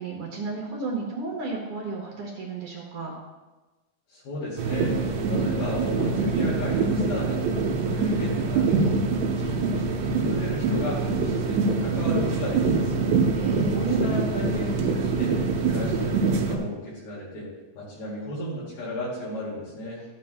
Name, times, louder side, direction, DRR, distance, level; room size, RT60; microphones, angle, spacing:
voice 1, 0.0-3.1 13.3-14.2, right 3 dB, 60° right, -2 dB, 2.4 m, -33 dB
voice 2, 4.1-5.0 5.3-13.1 13.7-17.5 17.7-20.0, equal, 70° left, -7 dB, 4.1 m, -34 dB
sound 1, 4.6-16.6, right 4 dB, 90° right, 3.0 m, -24 dB
13.5 x 8.4 x 2.2 m, 1.2 s
omnidirectional pair, 4.7 m